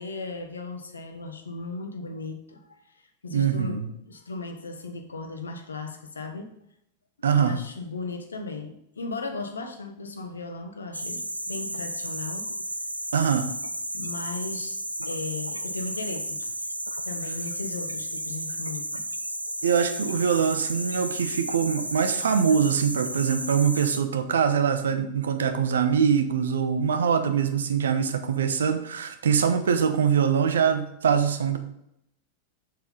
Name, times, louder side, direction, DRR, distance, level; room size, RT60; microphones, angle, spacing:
voice 1, 0.0-2.8 3.2-6.5 7.3-12.5 13.9-14.8 15.1-16.5 17.1-19.0, left 3 dB, 75° left, 5 dB, 1.2 m, -36 dB
voice 2, 3.3-3.9 7.2-7.6 13.1-13.5 19.6-31.6, right 7 dB, 65° right, 9 dB, 0.9 m, -23 dB
sound 1, 10.9-24.0, right 1 dB, 90° right, 0.5 m, -33 dB
7.3 x 7.2 x 3.8 m, 0.78 s
figure-of-eight pair, 90°, 0 cm